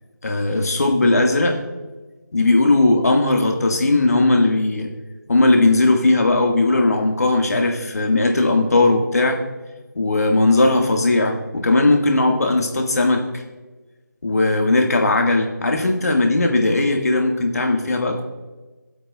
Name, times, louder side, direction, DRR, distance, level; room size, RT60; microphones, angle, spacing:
voice 1, 0.2-1.6 2.3-4.9 5.3-9.4 9.9-13.4 14.2-18.2, left 2 dB, 55° left, 3 dB, 1.5 m, -18 dB
23.5 x 7.9 x 2.2 m, 1.3 s
figure-of-eight pair, 170°, 10 cm